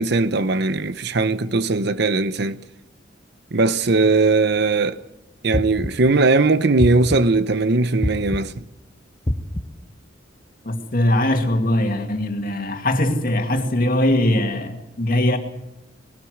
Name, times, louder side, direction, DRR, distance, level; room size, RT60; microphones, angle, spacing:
voice 1, 0.0-2.6 3.5-5.0 5.4-8.5, right 3 dB, 60° right, 0.8 m, -19 dB
sound 1, 5.5-6.2 6.8-7.4 8.0-8.7 9.3-9.9, left 1 dB, 20° left, 0.9 m, -26 dB
voice 2, 10.6-15.4, left 1 dB, 50° left, 2.3 m, -21 dB
20.5 x 18.0 x 7.9 m
head